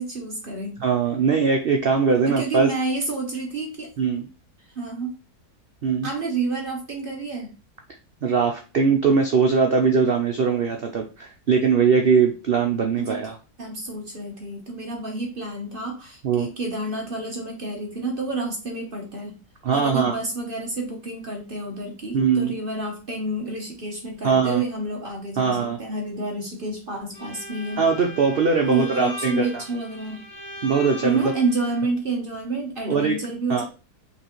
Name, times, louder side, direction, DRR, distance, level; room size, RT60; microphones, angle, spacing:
voice 1, 0.0-0.8 2.2-3.9 4.7-5.2 6.0-7.5 13.0-13.2 13.6-19.4 19.7-27.9 28.6-30.3 31.0-33.6, right 3 dB, 40° right, 1 dB, 0.9 m, -29 dB
voice 2, 0.8-2.7 4.0-4.2 5.8-6.1 8.2-13.3 16.2-16.5 19.6-20.2 22.1-22.5 24.2-24.6 25.4-25.8 27.8-29.6 30.6-31.3 32.9-33.2 33.5-33.6, right 5 dB, 75° right, 3 dB, 0.5 m, -21 dB
Bowed string instrument, 27.1-31.8, left 2 dB, 70° left, 2.3 m, -38 dB
5.6 x 3.1 x 3.0 m, 0.33 s
omnidirectional pair, 1.7 m